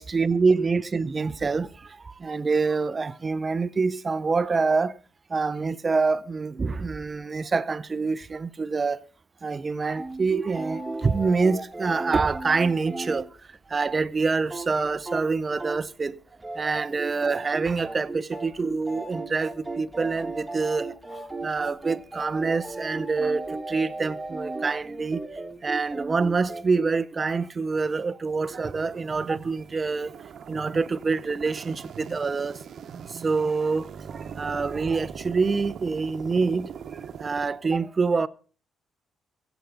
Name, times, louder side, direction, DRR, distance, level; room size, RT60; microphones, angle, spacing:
voice 1, 0.0-4.9 5.3-9.0 9.4-13.3 13.7-16.2 16.6-25.2 25.6-30.1 30.5-32.6 33.1-36.7 37.2-38.3, right 4 dB, 30° right, 0.7 m, -26 dB
sound 1, 9.9-13.3 13.5-13.6 13.9-14.0 14.3-14.7 15.0-15.3 15.6-16.0 16.4-26.9, right 2 dB, 10° right, 1.8 m, -35 dB
sound 2, 28.3-37.5, right 7 dB, 65° right, 1.1 m, -41 dB
24.0 x 8.2 x 4.0 m
cardioid pair, 90°, 0 cm